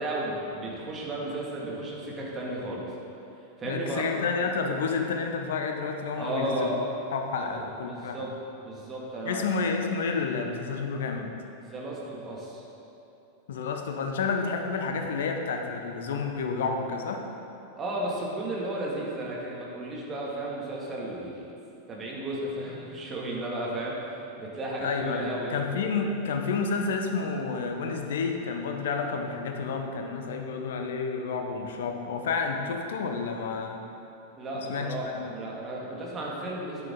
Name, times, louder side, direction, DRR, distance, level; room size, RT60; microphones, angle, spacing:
voice 1, 0.0-2.8 3.6-4.1 6.2-6.8 7.3-8.3 8.6-9.5 11.7-12.6 17.8-21.4 21.9-25.6 34.4-36.9, right 1 dB, 25° right, -4 dB, 2.3 m, -34 dB
voice 2, 3.6-6.8 7.1-8.3 9.2-11.3 13.5-17.2 24.8-33.8 34.5-35.3, left 4 dB, 60° left, 3 dB, 1.0 m, -30 dB
10.5 x 9.3 x 3.9 m, 2.9 s
figure-of-eight pair, 90°, 0 cm